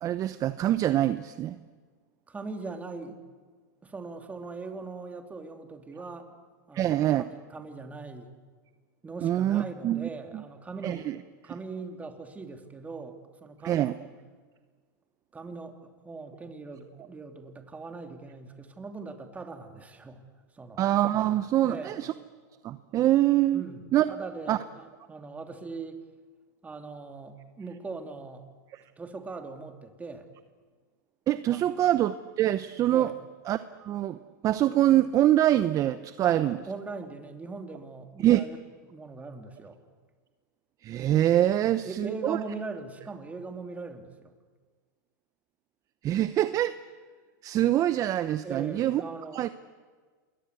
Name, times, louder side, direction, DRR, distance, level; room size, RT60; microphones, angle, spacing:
voice 1, 0.0-1.6 6.7-7.2 9.2-10.4 10.8-11.2 13.6-13.9 20.8-22.1 22.6-23.6 23.9-24.0 24.5-24.6 28.7-28.8 31.3-33.1 33.5-36.6 38.2-38.4 40.8-42.4 46.0-46.7 47.4-49.0 49.3-49.5, right 13 dB, 35° right, 12 dB, 0.9 m, -25 dB
voice 2, 2.3-3.2 3.8-6.3 6.7-8.3 9.0-11.1 11.4-14.1 15.3-20.2 20.5-20.9 21.6-22.0 23.5-26.0 26.6-28.4 29.0-30.3 31.5-31.7 32.9-33.1 36.2-38.6 38.9-39.8 41.6-44.3 48.4-49.4, right 3 dB, 15° right, 5 dB, 3.0 m, -40 dB
28.0 x 22.0 x 8.3 m, 1.5 s
hypercardioid pair, 120°, 10 cm